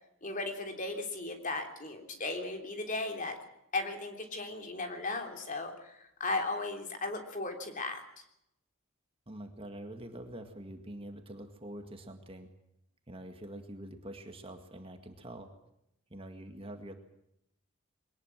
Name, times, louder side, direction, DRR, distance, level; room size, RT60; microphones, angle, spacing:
voice 1, 0.2-3.4 3.7-8.0, left 2 dB, 35° left, 4 dB, 3.4 m, -36 dB
voice 2, 9.3-12.5 13.1-15.5 16.1-17.0, right 1 dB, 25° right, 6 dB, 2.0 m, -45 dB
22.5 x 19.5 x 7.5 m, 0.81 s
head